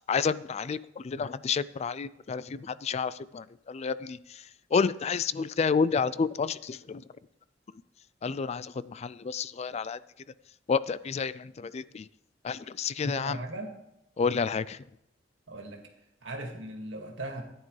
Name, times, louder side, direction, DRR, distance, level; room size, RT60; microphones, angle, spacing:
voice 1, 0.1-4.4 4.7-7.0 8.2-10.0 10.7-12.1 12.4-13.4 14.2-14.8, left 5 dB, 35° left, 17 dB, 0.3 m, -30 dB
voice 2, 13.0-13.7 15.5-15.8 16.2-17.4, right 1 dB, 70° right, 3 dB, 2.0 m, -38 dB
14.0 x 9.7 x 3.3 m, 0.84 s
head